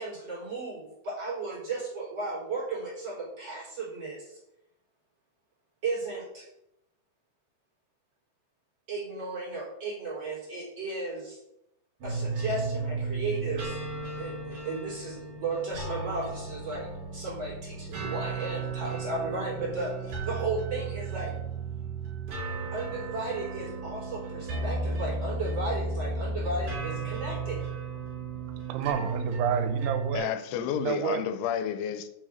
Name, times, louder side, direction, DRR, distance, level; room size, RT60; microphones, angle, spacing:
voice 1, 0.0-4.4 5.8-6.5 8.9-11.4 12.0-13.7 14.2-21.3 22.7-27.6, right 3 dB, 25° right, -5 dB, 4.0 m, -34 dB
sound 1, 12.0-30.2, right 3 dB, 45° right, 4.5 m, -34 dB
voice 2, 28.7-31.2, right 9 dB, 90° right, 9 dB, 3.2 m, -31 dB
voice 3, 30.1-32.1, left 9 dB, 90° left, 10 dB, 3.1 m, -31 dB
6.9 x 6.5 x 6.3 m, 0.84 s
omnidirectional pair, 5.4 m